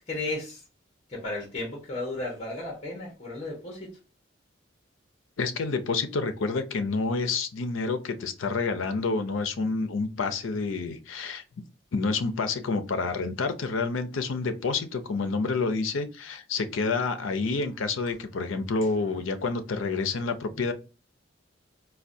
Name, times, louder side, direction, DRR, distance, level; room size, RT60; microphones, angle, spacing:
voice 1, 0.1-0.6 1.1-3.9, left 2 dB, 30° left, -1 dB, 1.0 m, -34 dB
voice 2, 5.4-11.4 11.9-20.7, left 4 dB, 75° left, 10 dB, 0.5 m, -28 dB
4.4 x 2.2 x 2.6 m, 0.32 s
head